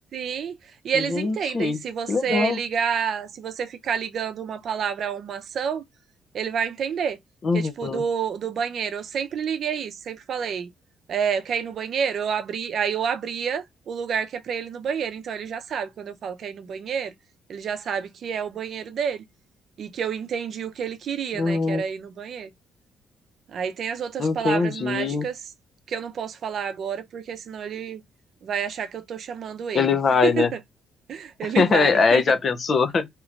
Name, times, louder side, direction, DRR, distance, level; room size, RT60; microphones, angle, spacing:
voice 1, 0.1-0.6 0.8-5.8 6.3-7.2 7.5-10.7 11.1-17.1 17.5-19.2 19.8-22.5 23.5-25.4 25.9-28.0 28.4-29.9 30.2-30.6 31.1-32.4, right 7 dB, 60° right, 0.6 m, -29 dB
voice 2, 0.9-1.8 2.1-2.6 7.4-8.0 21.3-21.8 24.2-25.3 29.7-30.5 31.6-33.1, left 4 dB, 45° left, 0.6 m, -22 dB
3.0 x 2.5 x 3.1 m
cardioid pair, 90°, 0 cm